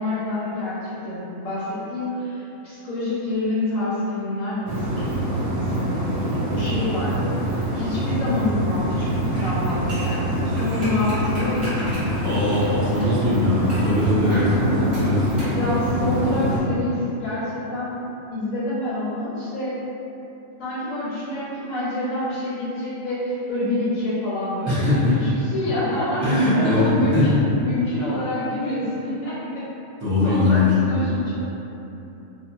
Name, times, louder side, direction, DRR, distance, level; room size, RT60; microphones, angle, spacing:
voice 1, 0.0-12.0 14.3-18.0 18.3-19.7 20.6-29.6 30.2-31.4, left 1 dB, 70° left, -9 dB, 0.9 m, -27 dB
sound 1, 4.7-16.6, right 1 dB, 60° right, 0.7 m, -25 dB
sound 2, 9.3-13.1 13.7-14.0 14.9-15.6 15.9-16.0, equal, 35° right, 1.2 m, -36 dB
voice 2, 12.2-14.4 15.0-15.2 24.7-25.1 26.2-27.4 30.0-31.1, left 2 dB, 20° right, -13 dB, 0.6 m, -20 dB
2.8 x 2.4 x 2.5 m, 3.0 s
omnidirectional pair, 1.5 m